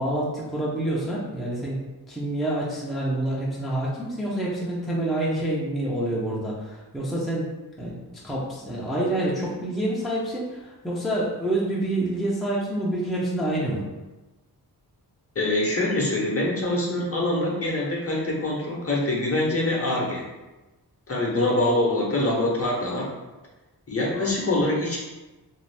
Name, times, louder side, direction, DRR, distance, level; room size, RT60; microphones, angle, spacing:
voice 1, 0.0-1.8 2.1-7.5 7.8-13.8, right 1 dB, ahead, -6 dB, 0.5 m, -27 dB
voice 2, 15.3-20.2 21.1-23.1 23.9-25.0, left 1 dB, 35° left, -3 dB, 0.8 m, -24 dB
2.6 x 2.4 x 3.3 m, 1.1 s
wide cardioid pair, 95°, 40 cm